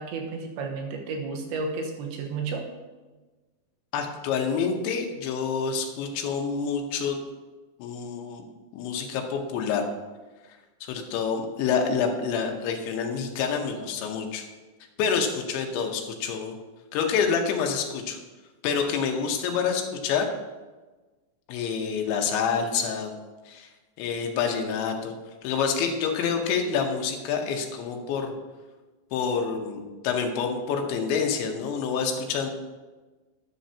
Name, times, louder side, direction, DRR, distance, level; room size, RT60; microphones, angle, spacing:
voice 1, 0.0-2.6, right 4 dB, 80° right, 2 dB, 3.4 m, -32 dB
voice 2, 3.9-7.2 7.8-8.4 8.7-9.8 10.8-14.4 15.0-16.6 16.9-18.2 18.6-20.3 21.5-23.1 23.5-23.7 24.0-25.1 25.4-28.3 29.1-32.5, left 6 dB, 85° left, 3 dB, 3.3 m, -27 dB
11.0 x 10.5 x 2.8 m, 1.2 s
omnidirectional pair, 5.2 m